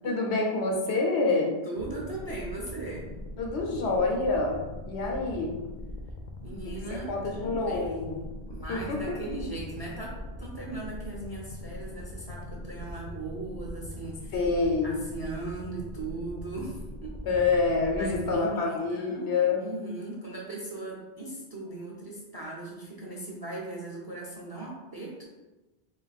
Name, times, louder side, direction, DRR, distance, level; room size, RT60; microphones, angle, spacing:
voice 1, 0.0-1.5 3.4-4.6 4.9-5.6 6.6-8.2 8.7-9.2 14.3-14.9 17.2-19.6, left 3 dB, 85° left, 0 dB, 1.1 m, -27 dB
voice 2, 1.6-3.1 6.4-14.3 14.8-17.2 18.0-19.3 19.6-25.3, right 2 dB, 25° right, -4 dB, 0.6 m, -38 dB
sound 1, 1.8-18.3, left 1 dB, 50° left, 0.6 m, -41 dB
3.7 x 2.5 x 4.0 m, 1.1 s
omnidirectional pair, 1.1 m